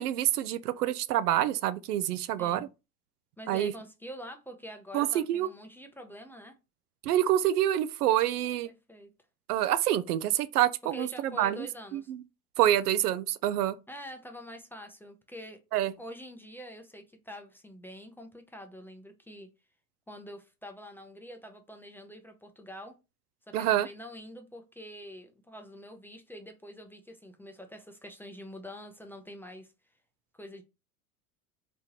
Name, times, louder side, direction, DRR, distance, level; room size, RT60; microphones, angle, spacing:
voice 1, 0.0-2.7 3.5-3.7 4.9-5.5 7.0-8.7 9.5-11.7 11.9-12.2 12.6-13.8 15.7-15.9 23.5-23.9, right 12 dB, 75° right, 0.5 m, -27 dB
voice 2, 2.4-2.7 3.4-6.6 8.6-9.1 10.9-12.1 13.9-15.6 16.0-19.5 20.1-22.9 23.5-29.7 30.3-30.6, equal, 5° left, 0.5 m, -46 dB
3.4 x 3.0 x 3.0 m
hypercardioid pair, 80°, 46 cm